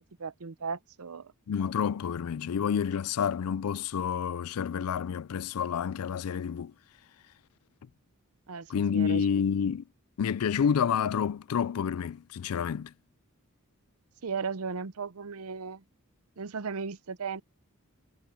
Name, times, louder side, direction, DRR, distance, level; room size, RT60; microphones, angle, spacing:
voice 1, 0.2-1.3 8.5-9.2 14.2-15.8 16.4-17.4, right 5 dB, 70° right, 0.7 m, -36 dB
voice 2, 1.5-6.7 8.7-9.8 10.2-12.9, left 7 dB, 75° left, 0.4 m, -29 dB
head